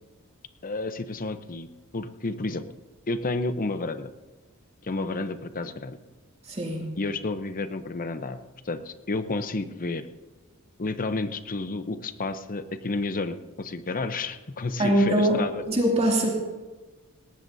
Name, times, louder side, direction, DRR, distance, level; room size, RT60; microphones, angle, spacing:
voice 1, 0.6-1.7 1.9-2.6 3.1-4.1 4.8-6.0 7.0-8.4 8.6-10.0 10.8-15.6, left 3 dB, 40° left, 10 dB, 0.8 m, -31 dB
voice 2, 6.5-6.9 14.8-15.4 15.7-16.3, right 1 dB, 30° right, -1 dB, 2.5 m, -22 dB
19.0 x 18.0 x 2.7 m, 1.3 s
head